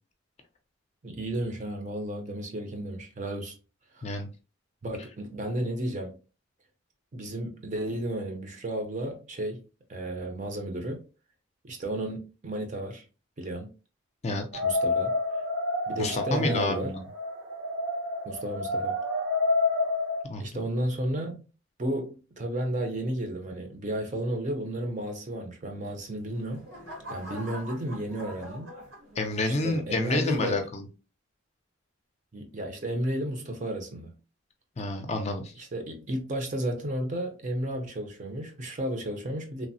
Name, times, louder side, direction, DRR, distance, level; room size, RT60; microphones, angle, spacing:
voice 1, 1.0-3.5 3.9-4.1 4.8-6.1 7.1-9.6 9.9-11.0 11.6-13.0 13.4-13.7 14.6-15.1 15.9-16.9 18.2-19.0 20.4-21.4 21.8-26.6 27.1-28.7 29.5-30.6 32.3-34.2 35.5-39.7, right 1 dB, 40° right, 0.5 m, -33 dB
sound 1, 14.5-20.2, left 2 dB, 65° right, 0.8 m, -29 dB
voice 2, 16.0-17.0 20.3-20.5 29.2-30.9 34.8-35.5, left 2 dB, 35° left, 0.4 m, -29 dB
sound 2, 26.0-29.6 30.1-30.5, equal, 90° right, 1.3 m, -44 dB
3.1 x 2.0 x 2.6 m
head